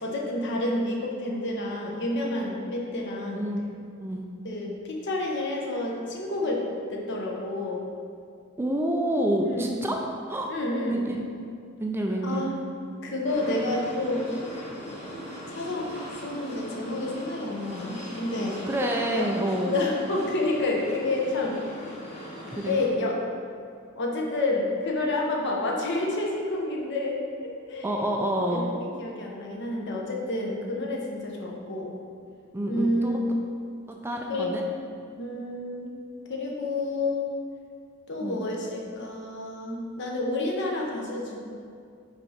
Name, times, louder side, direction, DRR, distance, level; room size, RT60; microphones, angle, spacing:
voice 1, 0.0-3.5 4.4-6.6 6.9-7.8 9.4-9.7 10.5-11.0 12.2-12.6 13.0-14.3 15.5-18.6 19.1-19.2 19.6-21.8 22.6-23.1 24.0-27.2 27.7-27.9 28.5-28.7 29.0-31.9 32.7-33.2 34.3-34.5 35.1-35.9 36.3-37.3 38.1-41.4, left 2 dB, 55° left, -1 dB, 0.9 m, -29 dB
voice 2, 3.3-3.6 4.0-4.2 8.6-10.0 10.3-10.5 10.9-11.2 11.8-12.5 18.7-19.8 22.5-22.8 27.8-28.7 32.5-33.1 33.9-34.6 38.2-38.4, right 1 dB, 10° right, 1 dB, 0.4 m, -28 dB
sound 1, 13.3-22.9, equal, 35° left, 1.2 m, -40 dB
5.2 x 4.2 x 5.0 m, 2.3 s
head